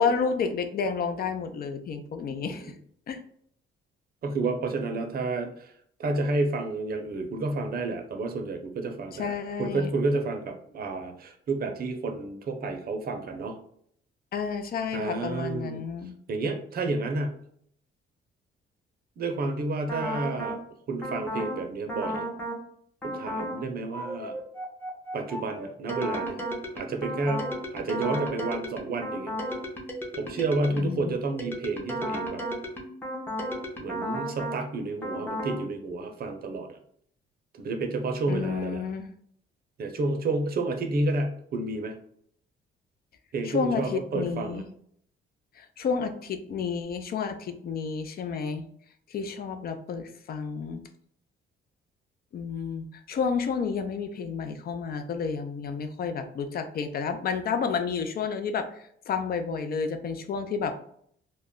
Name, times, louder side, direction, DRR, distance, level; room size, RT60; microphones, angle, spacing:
voice 1, 0.0-2.7 3.1-3.2 9.2-9.9 14.3-16.1 30.7-31.2 38.3-39.1 43.4-44.7 45.6-48.6 49.1-50.8 52.3-60.7, left 5 dB, 50° left, 8 dB, 0.4 m, -30 dB
voice 2, 2.4-2.7 4.2-5.7 6.0-13.6 14.9-15.8 16.3-17.4 19.2-20.6 20.9-22.3 23.0-24.3 25.1-26.4 26.7-27.5 27.7-29.4 30.2-32.4 33.8-36.8 37.5-38.8 39.8-41.9 43.3-44.6, right 3 dB, 50° right, 5 dB, 0.6 m, -30 dB
sound 1, 19.9-20.6 21.0-21.6 21.9-22.6 23.0-23.6 23.9-31.0 31.4-34.6 35.0-35.6, equal, 10° left, 0.6 m, -34 dB
2.2 x 2.0 x 3.6 m, 0.65 s
cardioid pair, 90°, 20 cm